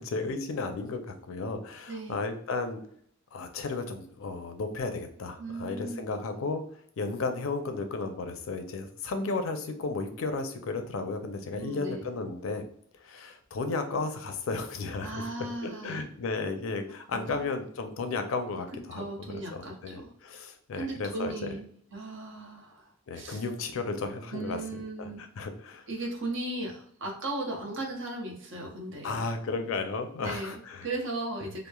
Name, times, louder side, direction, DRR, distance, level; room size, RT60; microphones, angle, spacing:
voice 1, 0.0-2.8 3.3-6.6 7.0-12.6 13.0-15.2 15.6-21.6 23.1-25.9 29.0-30.9, left 3 dB, 75° left, 6 dB, 0.4 m, -34 dB
voice 2, 1.9-2.2 5.4-6.3 11.6-12.0 15.0-16.0 17.1-17.4 18.9-20.1 20.7-23.4 24.3-25.2 25.9-29.3 30.2-31.7, right 2 dB, 65° right, 1 dB, 0.7 m, -37 dB
3.0 x 2.0 x 2.2 m, 0.63 s
head